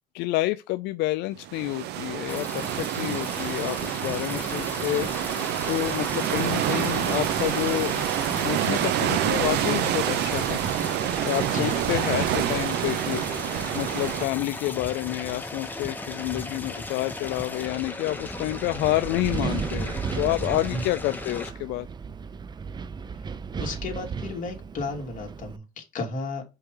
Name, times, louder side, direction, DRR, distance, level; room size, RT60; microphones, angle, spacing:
voice 1, 0.1-8.1 8.3-10.6 11.2-21.9, left 17 dB, 85° left, 0.4 m, -29 dB
sound 1, 1.4-14.3, right 12 dB, 80° right, 0.7 m, -27 dB
sound 2, 2.3-21.5, left 2 dB, 10° left, 1.2 m, -36 dB
Wind, 18.2-25.6, right 5 dB, 25° right, 0.5 m, -34 dB
voice 2, 23.6-26.4, left 3 dB, 50° left, 2.4 m, -33 dB
5.5 x 4.6 x 3.8 m
cardioid pair, 110°, 17 cm